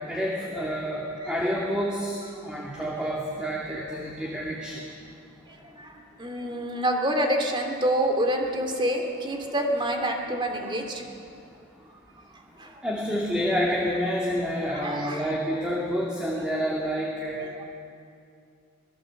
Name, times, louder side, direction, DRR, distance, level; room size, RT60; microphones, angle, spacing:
voice 1, 0.1-4.8 12.8-17.5, equal, 5° right, -4 dB, 2.6 m, -28 dB
voice 2, 5.5-5.9 6.2-11.0 12.6-12.7 14.7-15.3 17.6-17.7, right 1 dB, 25° right, 3 dB, 2.7 m, -27 dB
25.5 x 18.0 x 7.8 m, 2.5 s
head